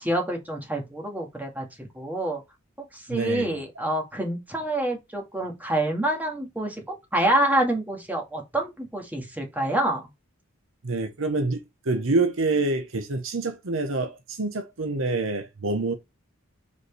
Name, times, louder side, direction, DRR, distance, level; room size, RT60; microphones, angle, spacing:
voice 1, 0.0-1.7 1.9-2.4 2.9-6.8 7.1-10.0, right 1 dB, 10° right, 2.1 m, -27 dB
voice 2, 3.1-3.6 10.8-11.6 11.8-15.9, right 3 dB, 65° right, 1.0 m, -26 dB
5.3 x 4.9 x 4.8 m
head